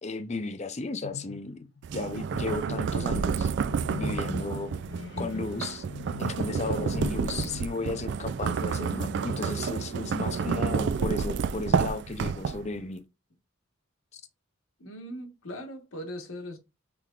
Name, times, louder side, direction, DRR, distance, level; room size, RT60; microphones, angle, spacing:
voice 1, 0.0-1.6 1.9-3.5 4.0-4.7 5.2-5.8 6.2-13.0 14.1-14.2, left 3 dB, 30° left, 0.5 m, -34 dB
sound 1, 1.0-2.1 3.7-10.2, left 4 dB, 65° left, 0.8 m, -41 dB
sound 2, 1.8-12.8, right 6 dB, 55° right, 0.3 m, -30 dB
voice 2, 4.4-4.8 14.8-16.6, equal, 85° left, 1.3 m, -40 dB
5.8 x 3.5 x 2.4 m
head